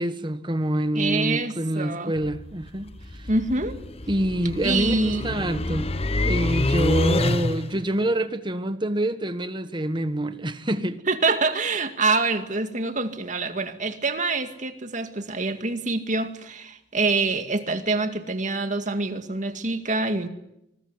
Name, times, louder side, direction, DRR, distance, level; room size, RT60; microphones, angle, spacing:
voice 1, 0.0-3.3 4.1-5.9 6.2-11.0, right 1 dB, 25° right, 1.5 m, -26 dB
voice 2, 0.9-2.1 3.3-3.8 4.6-5.2 11.1-20.3, right 3 dB, 45° right, 2.2 m, -25 dB
sound 1, 2.2-7.8, left 2 dB, 35° left, 1.1 m, -27 dB
24.5 x 21.0 x 9.8 m
head